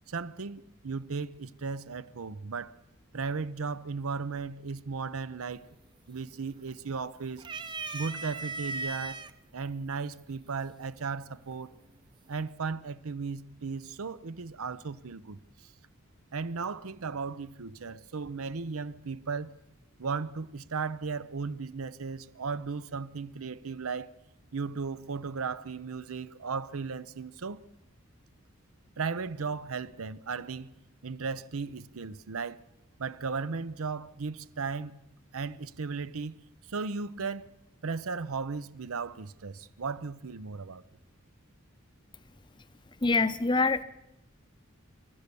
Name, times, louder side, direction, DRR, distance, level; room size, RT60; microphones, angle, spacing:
voice 1, 0.1-2.7 3.1-5.7 6.1-7.4 7.9-9.3 9.5-11.7 12.3-15.7 16.3-19.5 20.0-24.1 24.5-27.6 29.0-30.7 31.0-32.6 33.0-35.0 35.3-36.4 36.7-37.5 37.8-40.8, right 4 dB, 80° right, 0.7 m, -36 dB
sound 1, 5.5-5.9 6.3-7.0 7.4-9.3 10.2-10.3 11.5-12.0, right 3 dB, 20° right, 0.6 m, -37 dB
voice 2, 43.0-43.8, left 3 dB, 20° left, 0.7 m, -25 dB
28.5 x 13.0 x 6.9 m
head